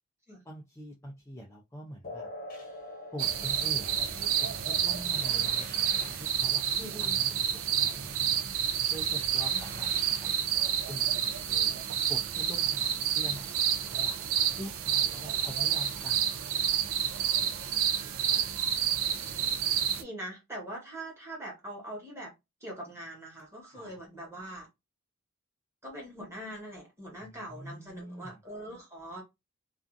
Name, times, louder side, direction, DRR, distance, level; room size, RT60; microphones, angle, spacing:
voice 1, 0.4-2.3 3.1-6.7 7.0-8.4 8.9-9.9 10.2-14.2 14.5-16.4 23.7-24.0 27.2-28.4, equal, 15° left, 0.4 m, -45 dB
sound 1, 2.0-9.1, left 2 dB, 45° left, 0.7 m, -48 dB
sound 2, 3.2-20.0, right 9 dB, 75° right, 0.4 m, -29 dB
sound 3, 4.5-12.3, equal, 40° right, 1.0 m, -54 dB
voice 2, 6.8-7.2 9.5-9.6 19.9-22.3 22.6-24.7 25.8-29.2, right 1 dB, 15° right, 1.2 m, -42 dB
2.5 x 2.4 x 2.4 m
head